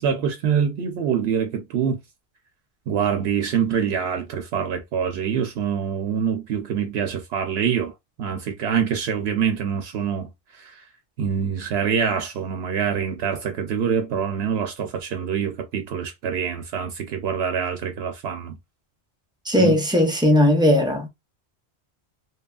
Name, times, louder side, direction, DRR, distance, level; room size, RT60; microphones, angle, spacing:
voice 1, 0.0-2.0 2.9-7.9 8.2-10.3 10.6-10.8 11.2-18.6 19.6-19.7, right 7 dB, 75° right, 0.8 m, -25 dB
voice 2, 19.4-21.1, left 1 dB, 5° right, 0.4 m, -18 dB
3.0 x 2.3 x 2.3 m
omnidirectional pair, 1.1 m